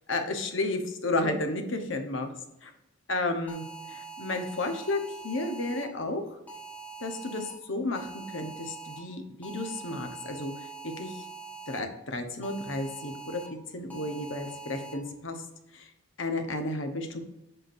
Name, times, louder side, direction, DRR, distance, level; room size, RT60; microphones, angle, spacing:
voice 1, 0.1-2.3 2.6-2.7 3.1-3.6 3.9-6.2 7.0-10.5 10.8-11.2 11.7-13.4 13.7-15.4 15.7-15.9 16.2-17.2, left 2 dB, 65° left, 5 dB, 1.0 m, -32 dB
sound 1, 3.5-5.9 6.5-7.5 7.9-9.0 9.4-11.8 12.4-13.5 13.9-14.9, right 5 dB, 10° left, 1.2 m, -43 dB
7.8 x 6.0 x 2.6 m, 0.93 s
head